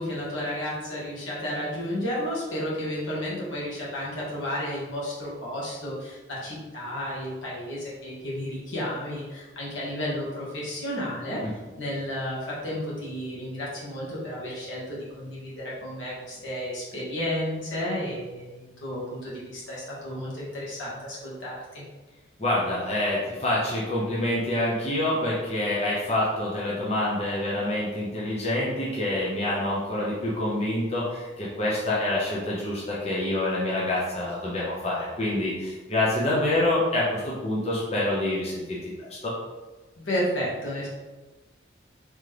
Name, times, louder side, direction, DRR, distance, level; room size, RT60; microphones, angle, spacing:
voice 1, 0.0-11.4 11.8-21.8 40.0-40.9, equal, 80° left, -6 dB, 1.4 m, -32 dB
voice 2, 22.4-39.3, left 1 dB, 30° left, -6 dB, 0.7 m, -27 dB
3.7 x 3.1 x 3.3 m, 1.2 s
head